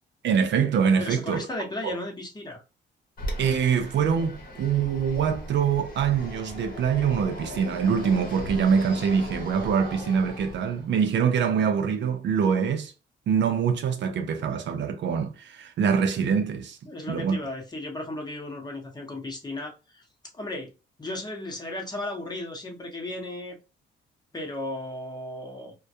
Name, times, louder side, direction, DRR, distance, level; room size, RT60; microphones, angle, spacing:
voice 1, 0.2-1.5 1.8-2.0 3.4-12.9 13.3-16.8 17.1-17.4, right 7 dB, 65° right, 0.5 m, -24 dB
voice 2, 1.0-2.6 16.8-20.0 20.4-20.7 21.0-23.6 24.3-25.7, left 1 dB, 20° left, 0.9 m, -35 dB
Fixed-wing aircraft airplane, 3.2-11.0, left 1 dB, 45° left, 0.9 m, -38 dB
2.2 x 2.2 x 2.6 m
cardioid pair, 90°, 20 cm